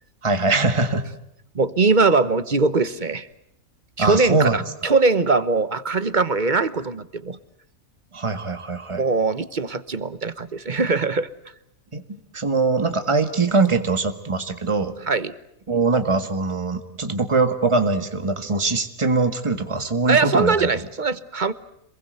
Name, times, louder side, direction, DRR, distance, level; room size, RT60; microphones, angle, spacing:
voice 1, 0.2-1.1 4.0-4.6 4.8-4.9 8.1-9.0 11.9-12.0 12.3-14.9 15.7-20.7, right 3 dB, 20° right, 8 dB, 1.8 m, -22 dB
voice 2, 1.5-3.3 4.0-7.4 9.0-11.3 15.1-15.4 20.1-21.5, right 4 dB, 40° right, 14 dB, 1.1 m, -21 dB
27.5 x 22.0 x 7.9 m, 0.79 s
omnidirectional pair, 1.4 m